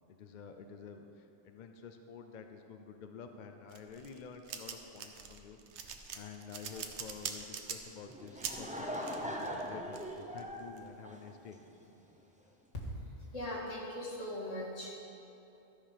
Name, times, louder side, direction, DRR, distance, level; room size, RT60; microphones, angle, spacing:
voice 1, 0.1-5.6 6.1-11.6 12.4-12.6, left 6 dB, 55° left, 6 dB, 0.5 m, -50 dB
sound 1, 3.7-10.8, right 7 dB, 65° right, 0.9 m, -44 dB
Laughter / Crowd, 8.1-11.8, equal, 10° right, 0.5 m, -40 dB
voice 2, 13.3-15.0, left 1 dB, 70° left, -4 dB, 2.1 m, -40 dB
13.0 x 5.1 x 5.6 m, 2.9 s
omnidirectional pair, 1.3 m